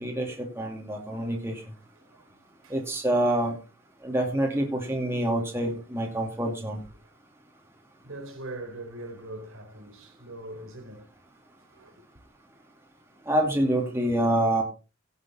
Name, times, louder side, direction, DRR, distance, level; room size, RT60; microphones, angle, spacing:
voice 1, 0.0-1.6 2.7-3.5 4.0-6.8 13.3-14.6, right 1 dB, 10° right, 2.7 m, -26 dB
voice 2, 2.0-2.3 2.6-2.8 4.1-4.2 8.0-11.1 11.7-11.9 14.1-14.2, right 1 dB, 75° right, 4.3 m, -42 dB
16.5 x 7.5 x 4.4 m
head